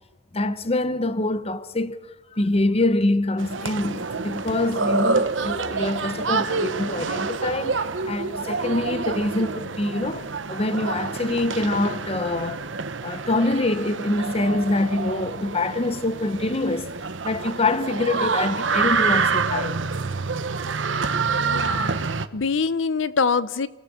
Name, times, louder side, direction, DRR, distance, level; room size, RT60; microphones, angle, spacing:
voice 1, 0.3-2.0 2.3-12.6 13.0-16.9 17.2-19.8, left 2 dB, 30° left, 1.0 m, -25 dB
sound 1, 3.4-22.3, right 4 dB, 80° right, 1.1 m, -27 dB
voice 2, 21.4-21.9 22.3-23.7, left 5 dB, 80° left, 0.7 m, -24 dB
28.0 x 17.5 x 7.2 m
head